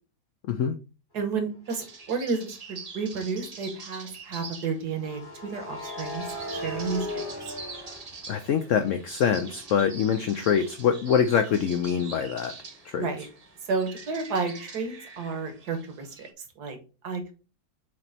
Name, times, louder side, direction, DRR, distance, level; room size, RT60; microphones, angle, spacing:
voice 1, 1.1-7.2 12.9-13.3 13.7-16.3 16.6-16.8 17.0-17.3, right 4 dB, 65° right, 1.8 m, -31 dB
sound 1, 1.6-16.3, right 4 dB, 50° right, 0.4 m, -45 dB
sound 2, 1.7-1.9 5.0-8.9 9.3-12.9, left 1 dB, 15° left, 1.0 m, -39 dB
voice 2, 8.3-12.5 12.8-13.1, left 7 dB, 75° left, 0.7 m, -24 dB
7.5 x 3.0 x 4.1 m
omnidirectional pair, 1.9 m